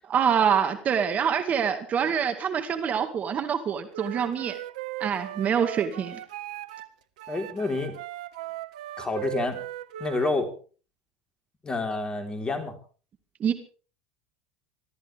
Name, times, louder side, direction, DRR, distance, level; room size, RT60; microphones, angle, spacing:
voice 1, 0.0-4.6 5.0-6.2 13.4-13.5, right 7 dB, 40° right, 8 dB, 2.1 m, -25 dB
Wind instrument woodwind instrument, 3.9-6.9 7.2-10.4, right 14 dB, 75° right, 1.1 m, -38 dB
voice 2, 7.3-8.0 9.0-9.6 10.0-10.5 11.6-12.7, left 3 dB, 20° left, 5 dB, 4.2 m, -28 dB
25.0 x 14.0 x 3.6 m, 0.39 s
hypercardioid pair, 80°, 4 cm